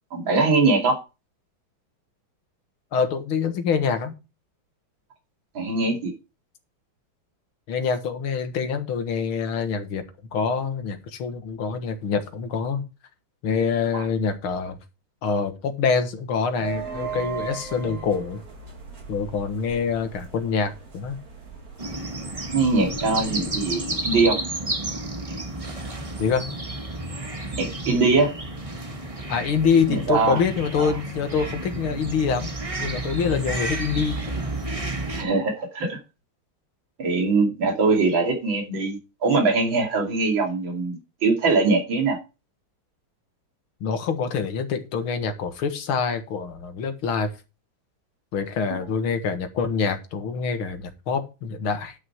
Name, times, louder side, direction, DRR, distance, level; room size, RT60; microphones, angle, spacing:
voice 1, 0.1-1.0 5.5-6.1 13.9-14.0 22.5-24.4 27.5-28.3 29.9-30.4 30.8-30.9 35.1-36.0 37.0-42.2 48.7-48.8, right 3 dB, 70° right, 3.3 m, -22 dB
voice 2, 2.9-4.1 7.7-10.0 10.3-12.8 13.4-14.8 15.2-18.4 19.1-21.2 26.2-26.5 29.3-32.5 32.8-34.2 43.8-47.3 48.3-52.0, left 5 dB, 85° left, 2.4 m, -25 dB
sound 1, 16.6-24.0, right 6 dB, 45° right, 2.8 m, -38 dB
sound 2, 21.8-35.2, right 2 dB, 20° right, 1.3 m, -31 dB
11.0 x 6.4 x 4.6 m
omnidirectional pair, 2.3 m